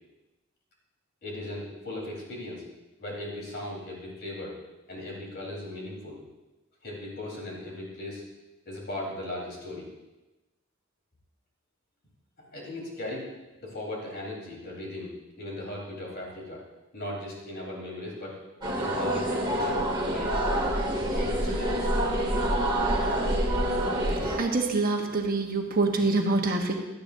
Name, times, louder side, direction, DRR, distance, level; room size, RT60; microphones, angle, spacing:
voice 1, 1.2-2.6 3.0-4.6 4.9-6.2 6.8-8.2 8.7-9.9 12.4-13.3 13.6-16.6 16.9-18.4 18.8-20.4 20.9-22.1, left 1 dB, 50° left, -3 dB, 4.1 m, -37 dB
sound 1, 18.6-24.4, right 1 dB, 25° right, 2.0 m, -27 dB
voice 2, 24.1-26.8, right 3 dB, 45° right, 2 dB, 1.2 m, -26 dB
17.5 x 12.0 x 2.7 m, 1.1 s
head